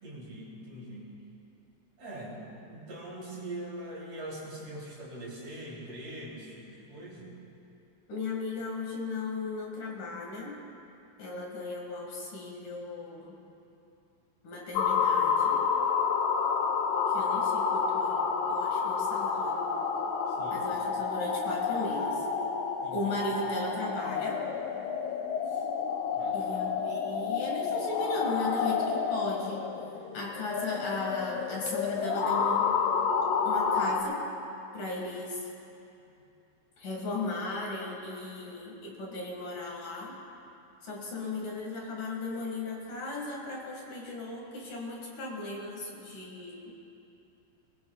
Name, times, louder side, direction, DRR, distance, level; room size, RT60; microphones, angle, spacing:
voice 1, 0.0-1.1 2.0-7.3 20.3-20.6 22.8-23.1 26.1-26.7, right 1 dB, 45° right, -6 dB, 4.1 m, -42 dB
voice 2, 8.1-10.5 11.2-13.4 14.4-15.6 17.1-18.2 18.5-19.7 20.5-22.2 22.9-24.4 26.3-29.7 30.1-32.7 33.4-34.2 34.7-35.4 36.8-40.1 40.8-46.7, left 2 dB, 60° left, -2 dB, 3.4 m, -36 dB
sound 1, 14.8-34.0, left 6 dB, 85° left, 2.9 m, -29 dB
22.0 x 21.5 x 2.4 m, 2.7 s
omnidirectional pair, 4.5 m